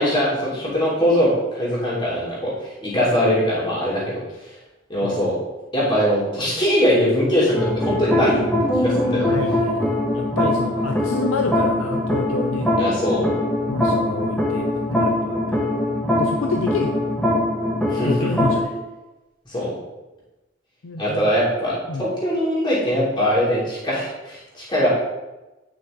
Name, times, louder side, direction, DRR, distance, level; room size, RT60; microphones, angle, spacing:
voice 1, 0.0-4.2 4.9-5.4 5.7-8.4 8.8-9.3 12.8-13.2 17.9-18.3 19.5-19.7 21.0-24.9, equal, 25° left, -7 dB, 3.1 m, -21 dB
sound 1, 7.6-18.6, left 1 dB, 5° left, 1.5 m, -22 dB
voice 2, 9.2-12.7 13.7-15.7 16.2-17.1 18.0-18.7 20.8-21.3 21.9-22.1, left 3 dB, 85° left, 4 dB, 0.6 m, -28 dB
9.3 x 6.2 x 3.8 m, 1.1 s
head